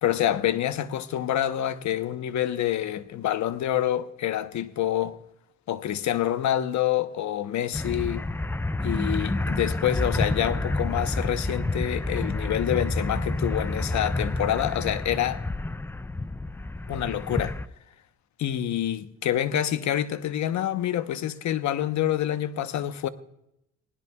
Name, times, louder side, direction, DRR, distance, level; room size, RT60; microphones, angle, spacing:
voice 1, 0.0-5.2 5.7-8.3 8.8-15.4 16.9-17.5 18.4-23.1, left 11 dB, 70° left, 1.0 m, -27 dB
sound 1, 7.7-17.7, left 2 dB, 10° left, 0.4 m, -29 dB
20.5 x 17.0 x 2.3 m
cardioid pair, 90°, 30 cm